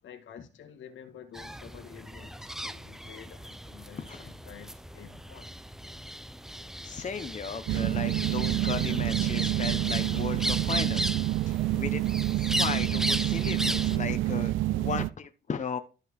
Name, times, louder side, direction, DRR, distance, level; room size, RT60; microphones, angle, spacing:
voice 1, 0.0-5.5 12.5-12.6, left 8 dB, 75° left, 1.9 m, -49 dB
sound 1, 1.3-14.0, equal, ahead, 0.7 m, -36 dB
voice 2, 6.8-11.1 11.5-15.8, left 6 dB, 40° left, 1.2 m, -36 dB
sound 2, 7.7-15.1, right 15 dB, 80° right, 0.5 m, -28 dB
13.0 x 5.3 x 3.7 m
cardioid pair, 90°, 20 cm